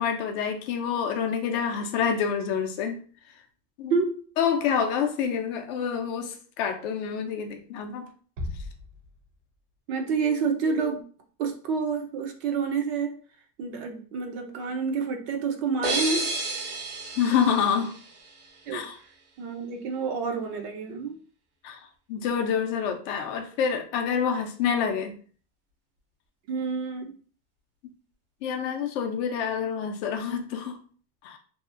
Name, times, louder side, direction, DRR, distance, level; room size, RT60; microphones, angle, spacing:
voice 1, 0.0-3.0 3.8-4.0 4.4-8.1 17.2-17.9 18.7-19.0 21.6-21.8 22.1-25.2 28.4-30.8 31.2-31.4, left 7 dB, 45° left, 5 dB, 0.5 m, -27 dB
voice 2, 3.9-4.3 9.9-11.0 11.4-13.2 13.6-16.3 18.7-18.9 19.4-21.2 26.5-27.1, right 5 dB, 45° right, 4 dB, 0.5 m, -28 dB
Bass drum, 8.4-9.8, left 2 dB, 60° right, 0.9 m, -38 dB
sound 1, 15.8-18.6, right 2 dB, 80° right, 1.1 m, -31 dB
2.7 x 2.3 x 2.4 m, 0.43 s
supercardioid pair, 155°, 45 cm